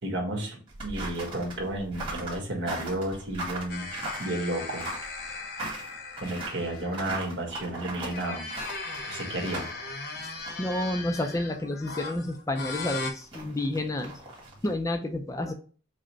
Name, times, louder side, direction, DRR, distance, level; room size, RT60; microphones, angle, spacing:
voice 1, 0.0-3.9 4.2-4.9 6.2-8.5 9.1-9.7, right 1 dB, 70° right, 1 dB, 1.4 m, -32 dB
sound 1, 0.7-11.2 11.5-11.6 12.5-14.7, right 2 dB, 25° right, 1.6 m, -39 dB
sound 2, 3.7-7.2 7.9-13.1, left 3 dB, 55° left, 0.8 m, -38 dB
voice 2, 10.6-14.2 14.6-15.5, left 1 dB, 15° left, 6 dB, 0.4 m, -30 dB
4.8 x 2.1 x 4.5 m, 0.39 s
head